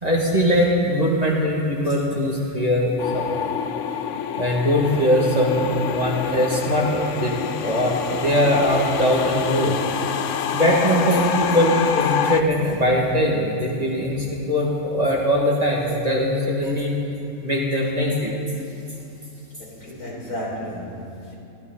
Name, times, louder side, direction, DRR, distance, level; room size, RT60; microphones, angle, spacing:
voice 1, 0.0-3.5 4.4-7.3 7.6-9.8 10.5-16.9 17.4-18.3, equal, 25° right, -3 dB, 2.3 m, -21 dB
sound 1, 3.0-12.4, left 8 dB, 65° left, 0.9 m, -27 dB
voice 2, 19.6-21.3, equal, 90° left, -5 dB, 4.9 m, -33 dB
22.0 x 15.5 x 4.1 m, 2.8 s
omnidirectional pair, 1.6 m